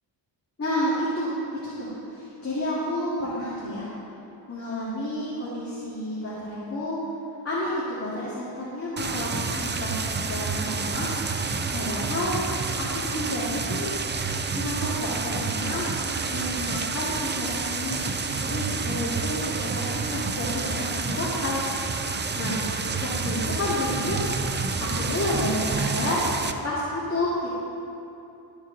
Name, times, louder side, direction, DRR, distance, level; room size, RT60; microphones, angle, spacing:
voice 1, 0.6-1.4 1.6-3.9 4.5-7.0 7.4-12.3 12.8-13.9 14.5-16.0 16.3-21.6 21.9-22.6 23.0-24.2 24.8-26.2 26.6-27.5, left 1 dB, 30° left, -9 dB, 2.1 m, -30 dB
sound 1, 9.0-26.5, right 4 dB, 25° right, 0.4 m, -29 dB
13.0 x 6.5 x 3.9 m, 2.7 s
cardioid pair, 90°, 47 cm